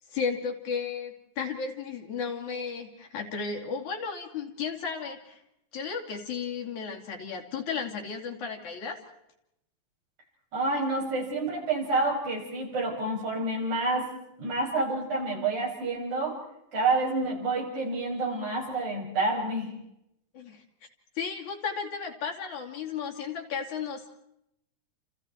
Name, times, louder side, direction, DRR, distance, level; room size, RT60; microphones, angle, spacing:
voice 1, 0.1-5.4 5.7-9.0 20.3-20.6 21.2-24.1, left 6 dB, 75° left, 2 dB, 4.3 m, -34 dB
voice 2, 10.5-14.1 14.4-16.4 16.7-19.7, right 2 dB, 75° right, -2 dB, 8.2 m, -28 dB
29.5 x 28.5 x 4.6 m, 0.81 s
omnidirectional pair, 3.4 m